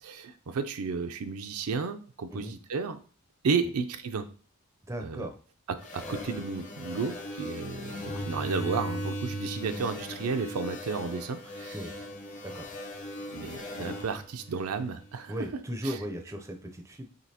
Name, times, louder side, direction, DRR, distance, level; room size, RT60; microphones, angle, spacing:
voice 1, 0.0-3.0 3.4-4.3 5.0-5.2 5.7-11.8 13.3-15.3 15.8-16.0, right 5 dB, 75° right, 8 dB, 0.5 m, -33 dB
voice 2, 4.9-5.3 11.7-11.9 12.4-12.7 15.3-17.1, equal, 15° right, 4 dB, 0.5 m, -36 dB
sound 1, 5.8-15.3, equal, 35° left, 0.8 m, -38 dB
5.1 x 3.4 x 2.8 m, 0.40 s
head